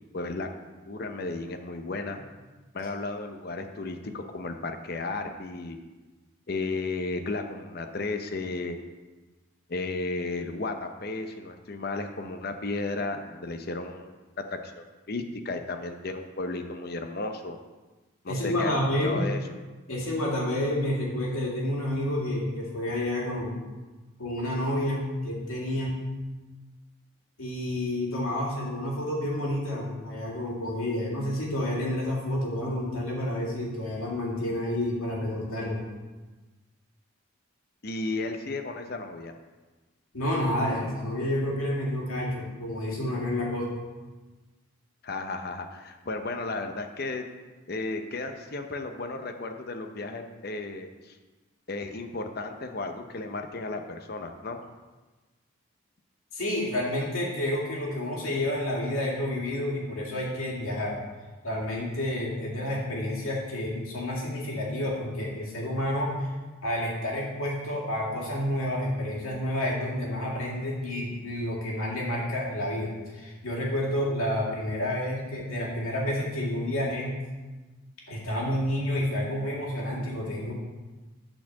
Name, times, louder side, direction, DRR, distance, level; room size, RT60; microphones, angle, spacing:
voice 1, 0.1-2.2 2.7-5.8 6.5-8.8 9.7-14.2 14.5-17.6 18.2-19.4 37.8-39.3 45.0-47.3 47.7-51.2 51.7-54.6, left 3 dB, 45° left, 6 dB, 0.6 m, -34 dB
voice 2, 18.3-19.2 19.9-23.5 24.2-26.0 27.4-35.8 40.1-43.7 56.3-61.0 61.4-66.3 66.6-77.1 78.1-80.5, left 1 dB, 90° left, -3 dB, 2.4 m, -29 dB
8.8 x 4.3 x 7.2 m, 1.2 s
head